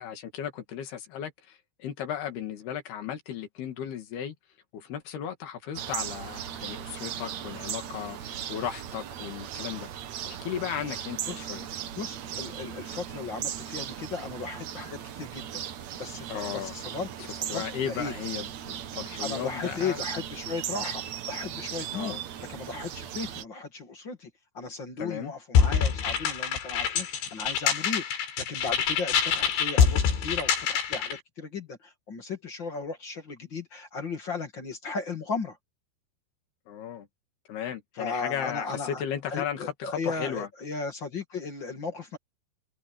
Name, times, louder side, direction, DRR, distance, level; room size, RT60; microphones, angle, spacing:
voice 1, 0.0-4.4 4.7-9.9 10.3-11.7 16.3-16.7 17.5-20.0 21.9-22.2 25.0-25.3 36.7-37.1 37.5-40.5, left 9 dB, 65° left, 4.0 m, -35 dB
sound 1, 5.7-23.4, right 10 dB, 85° right, 1.5 m, -37 dB
voice 2, 12.0-15.6 16.0-18.1 19.2-21.0 21.3-22.2 22.5-24.3 24.5-28.0 28.4-35.6 38.0-39.0 39.3-42.2, left 4 dB, 40° left, 1.7 m, -36 dB
sound 2, 25.6-31.2, left 7 dB, 80° left, 5.7 m, -25 dB
open air
omnidirectional pair, 5.2 m